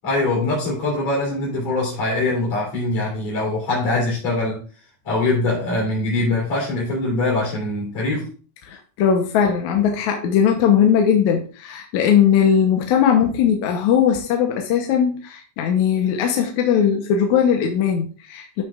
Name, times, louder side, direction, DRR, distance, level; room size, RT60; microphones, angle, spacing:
voice 1, 0.0-4.6 5.0-8.3, left 2 dB, 50° left, 4.2 m, -23 dB
voice 2, 8.6-18.6, left 8 dB, 70° left, 2.0 m, -19 dB
12.5 x 5.9 x 2.4 m
omnidirectional pair, 3.9 m